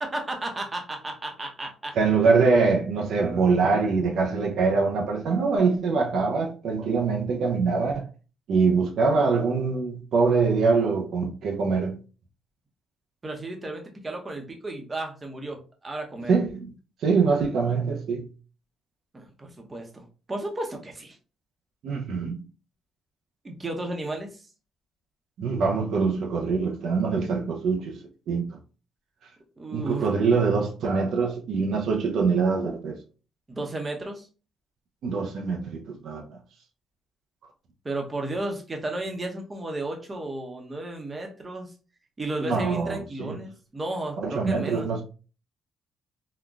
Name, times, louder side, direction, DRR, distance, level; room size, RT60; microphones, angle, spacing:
voice 1, 0.0-1.9 13.2-16.3 19.1-21.2 23.4-24.5 29.6-30.1 33.5-34.3 37.8-41.7 42.2-44.9, right 2 dB, 25° right, 0.8 m, -33 dB
voice 2, 1.9-8.1 8.5-12.0 16.3-16.7 17.0-18.3 21.8-22.4 25.4-28.6 29.7-33.0 35.0-36.4 42.4-43.4 44.2-45.0, right 4 dB, 70° right, 0.5 m, -24 dB
3.8 x 2.1 x 2.3 m
cardioid pair, 90°, 0 cm